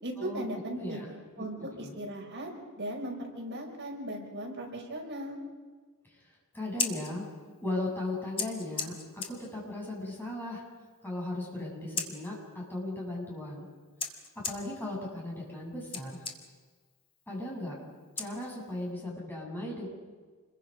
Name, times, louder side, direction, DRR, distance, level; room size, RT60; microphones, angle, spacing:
voice 1, 0.0-1.1 1.4-2.5 2.8-5.4, right 1 dB, 50° right, 0 dB, 5.3 m, -37 dB
voice 2, 0.8-1.1 1.4-2.0 6.5-7.3 7.6-10.6 11.0-13.7 14.1-16.2 17.3-17.8 18.2-19.9, left 1 dB, 10° left, -3 dB, 7.2 m, -37 dB
Scissors, 6.5-18.9, left 5 dB, 25° left, 2.0 m, -42 dB
28.5 x 22.0 x 5.4 m, 1.4 s
head